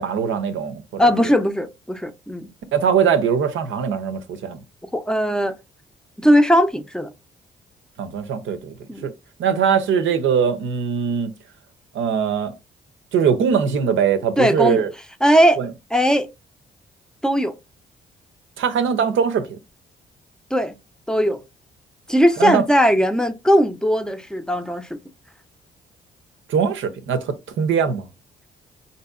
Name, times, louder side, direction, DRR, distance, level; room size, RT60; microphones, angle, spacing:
voice 1, 0.0-1.0 2.7-4.6 8.0-8.7 9.0-9.1 9.4-11.3 11.9-12.5 13.1-14.9 15.6-15.7 18.6-19.5 22.4-22.6 26.5-28.1, right 7 dB, 70° right, 0.6 m, -21 dB
voice 2, 1.0-2.5 4.9-5.6 6.2-7.1 8.9-9.1 14.4-14.8 15.2-15.6 15.9-16.3 17.2-17.5 20.5-20.8 21.1-21.4 22.1-25.0, equal, 5° left, 0.6 m, -18 dB
3.9 x 2.7 x 2.3 m
hypercardioid pair, 45°, 21 cm